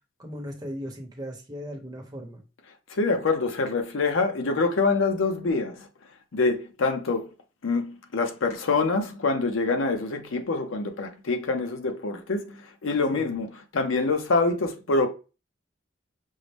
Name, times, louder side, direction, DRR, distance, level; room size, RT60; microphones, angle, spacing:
voice 1, 0.2-2.4 13.1-13.3, equal, 20° right, 0.8 m, -37 dB
voice 2, 2.9-5.9 6.3-7.3 7.6-15.1, left 3 dB, 85° left, 0.6 m, -25 dB
5.5 x 2.0 x 3.3 m
head